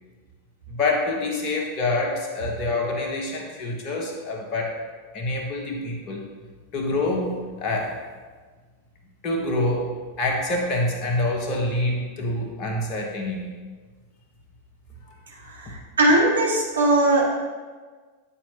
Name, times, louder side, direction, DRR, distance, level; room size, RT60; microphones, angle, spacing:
voice 1, 0.7-4.8 5.1-6.3 6.7-8.0 9.2-13.5, left 2 dB, 35° left, 0 dB, 1.2 m, -26 dB
voice 2, 15.5-17.4, right 1 dB, 70° right, -3 dB, 1.2 m, -20 dB
8.6 x 4.4 x 2.9 m, 1.4 s
figure-of-eight pair, 90°, 0 cm